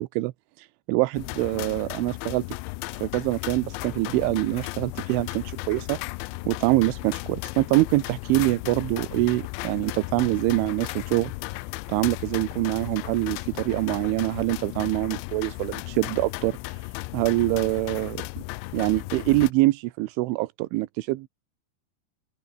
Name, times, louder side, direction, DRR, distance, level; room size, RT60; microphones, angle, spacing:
voice 1, 0.0-2.4 3.0-6.0 6.5-11.6 11.9-16.9 17.1-18.2 18.7-21.3, right 20 dB, 85° right, 3.3 m, -25 dB
sound 1, 1.1-19.5, left 23 dB, 80° left, 2.7 m, -35 dB
open air
omnidirectional pair, 5.5 m